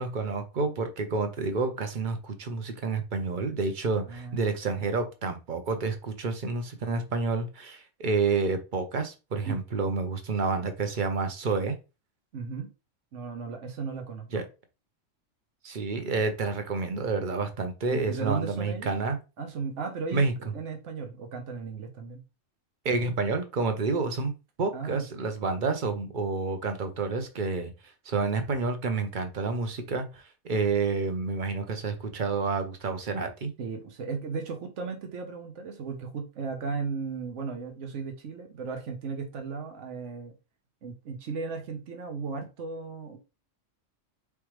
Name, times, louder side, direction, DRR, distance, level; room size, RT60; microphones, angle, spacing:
voice 1, 0.0-11.7 14.3-14.4 15.6-19.2 20.1-20.3 22.8-24.3 24.6-27.7 28.1-33.5, right 4 dB, 45° right, 0.9 m, -29 dB
voice 2, 4.1-4.4 9.5-9.6 12.3-12.7 13.1-14.3 17.9-19.0 19.4-20.3 20.5-22.2 24.7-25.1 33.6-40.3 40.8-43.2, right 5 dB, 65° right, 1.3 m, -35 dB
4.6 x 3.6 x 3.1 m
omnidirectional pair, 1.3 m